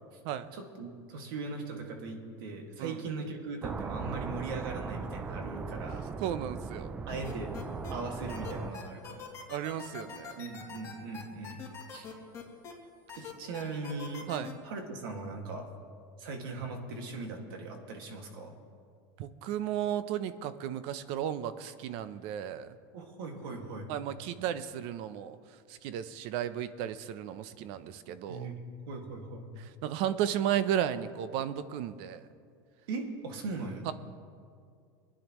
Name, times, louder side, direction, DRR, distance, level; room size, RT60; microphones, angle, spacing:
voice 1, 0.5-6.0 7.1-7.5 7.9-9.3 10.4-11.6 11.9-12.1 13.2-14.3 14.6-15.7 16.2-18.6 22.9-23.9 28.3-28.6 28.9-29.5 32.9-33.9, right 3 dB, 80° right, 3 dB, 2.0 m, -39 dB
sound 1, 3.6-8.7, right 5 dB, 10° right, 0.3 m, -39 dB
voice 2, 6.2-6.9 9.5-10.4 14.3-14.5 19.2-22.8 23.9-28.5 29.6-32.3 33.8-33.9, right 10 dB, 50° right, 13 dB, 0.6 m, -34 dB
sound 2, 7.2-7.9 8.3-12.7 13.1-14.5, left 7 dB, 25° left, 2.6 m, -44 dB
23.5 x 10.0 x 3.1 m, 2.2 s
supercardioid pair, 155°, 12 cm